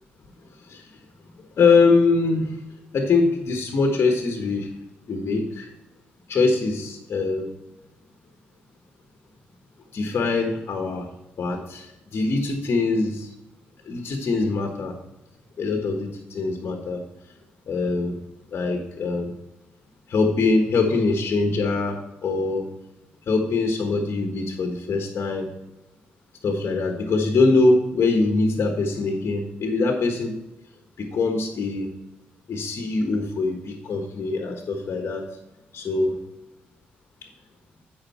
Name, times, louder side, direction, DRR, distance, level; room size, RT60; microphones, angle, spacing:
voice 1, 1.6-2.6 2.9-4.7 5.1-5.7 6.3-7.5 9.9-11.1 11.4-11.9 12.1-13.3 13.9-15.0 15.6-17.0 17.7-18.2 18.5-19.3 20.1-22.7 23.3-25.5 26.4-30.4 31.0-31.9 32.5-35.2 35.7-36.2, left 3 dB, 60° left, 3 dB, 1.4 m, -23 dB
8.8 x 5.4 x 4.4 m, 0.92 s
supercardioid pair, 50°, 5 cm